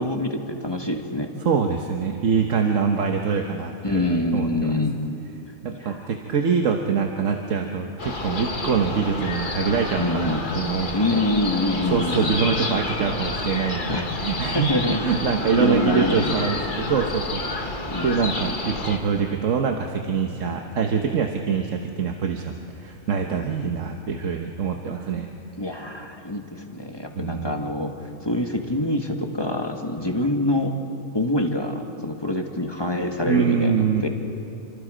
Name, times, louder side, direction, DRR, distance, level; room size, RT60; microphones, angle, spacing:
voice 1, 0.0-1.3 3.8-5.0 5.8-6.0 10.0-10.4 10.9-12.3 13.9-14.1 14.5-15.0 15.6-16.3 17.9-18.2 23.3-23.4 25.6-27.9 28.2-30.7 31.1-33.7 34.0-34.1, left 1 dB, 20° left, 3 dB, 1.6 m, -25 dB
voice 2, 1.4-4.8 5.6-11.2 11.9-17.4 17.8-25.3 27.2-27.6 33.3-34.0, right 6 dB, 70° right, 3 dB, 1.5 m, -24 dB
sound 1, 8.0-19.0, left 2 dB, 40° left, 1.6 m, -29 dB
28.5 x 24.5 x 5.1 m, 2.8 s
omnidirectional pair, 1.4 m